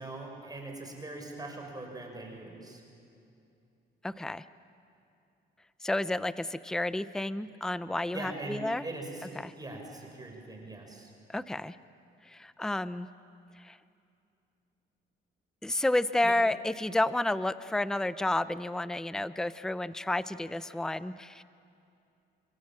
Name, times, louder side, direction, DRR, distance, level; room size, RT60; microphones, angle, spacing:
voice 1, 0.0-2.8 8.1-11.1 16.2-16.3, right 2 dB, 20° right, 1 dB, 6.0 m, -41 dB
voice 2, 4.0-4.4 5.8-8.8 9.4-9.5 11.3-11.8 12.2-13.1 13.6-13.8 15.6-21.4, left 2 dB, 5° left, 14 dB, 0.6 m, -31 dB
29.5 x 25.0 x 7.6 m, 2.6 s
cardioid pair, 90°, 20 cm